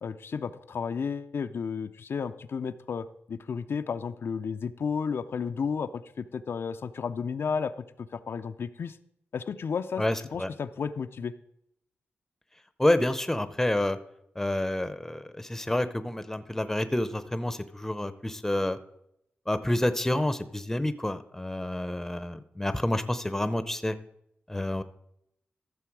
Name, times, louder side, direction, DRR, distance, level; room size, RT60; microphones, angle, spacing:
voice 1, 0.0-7.7 8.0-9.0 9.3-10.0 10.3-11.3, left 6 dB, 70° left, 9 dB, 0.5 m, -32 dB
voice 2, 10.0-10.5 12.8-14.0 14.4-18.8 19.5-24.0 24.5-24.8, left 1 dB, 10° left, 12 dB, 0.7 m, -28 dB
14.0 x 6.8 x 4.7 m, 0.76 s
wide cardioid pair, 90°, 4 cm